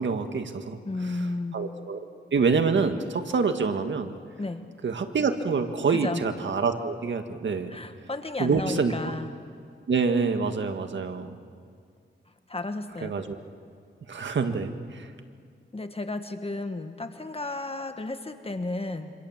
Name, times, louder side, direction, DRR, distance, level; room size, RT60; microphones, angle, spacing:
voice 1, 0.0-0.8 1.5-2.0 2.3-4.1 4.8-7.8 8.4-9.1 9.9-11.4 13.0-13.4 14.1-15.1, right 5 dB, 70° right, 7 dB, 1.8 m, -26 dB
voice 2, 0.8-1.6 4.4-4.6 5.9-6.2 7.7-9.3 12.5-13.2 15.7-19.1, left 2 dB, 30° left, 8 dB, 1.5 m, -33 dB
27.0 x 26.0 x 7.4 m, 2.2 s
cardioid pair, 70°, 20 cm